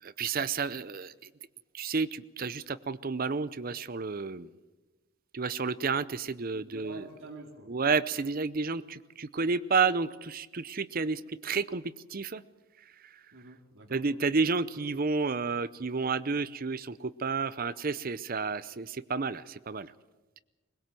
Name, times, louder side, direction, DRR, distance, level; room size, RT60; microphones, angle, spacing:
voice 1, 0.0-1.3 1.7-4.5 5.3-7.1 7.6-12.4 13.0-13.1 13.9-19.9, right 4 dB, 40° right, 16 dB, 0.6 m, -31 dB
voice 2, 6.5-7.7 13.3-14.0, right 2 dB, 60° right, -1 dB, 2.5 m, -47 dB
21.0 x 20.5 x 7.7 m, 1.2 s
head